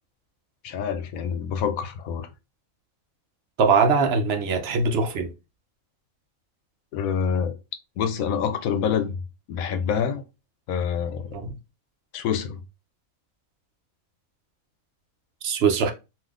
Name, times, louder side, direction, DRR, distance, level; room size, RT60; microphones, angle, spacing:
voice 1, 0.6-2.3 6.9-7.5 8.0-9.2 9.5-10.2 10.7-11.4 12.1-12.6, left 7 dB, 80° left, 1.0 m, -26 dB
voice 2, 3.6-5.3 11.3-11.5 15.4-15.9, right 5 dB, 60° right, 0.7 m, -21 dB
3.5 x 2.7 x 2.3 m
omnidirectional pair, 1.4 m